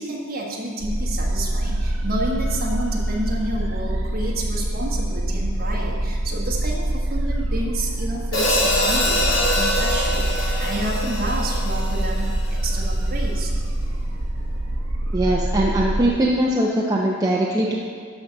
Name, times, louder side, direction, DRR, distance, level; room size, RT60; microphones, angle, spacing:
voice 1, 0.0-13.5, right 1 dB, 45° right, -2 dB, 1.5 m, -30 dB
sound 1, 0.8-16.1, right 1 dB, 60° right, 0.9 m, -25 dB
Hi-hat, 8.3-12.6, left 1 dB, 60° left, 2.2 m, -24 dB
voice 2, 15.1-17.8, right 1 dB, 15° right, -3 dB, 0.6 m, -21 dB
12.0 x 4.0 x 6.5 m, 2.3 s
head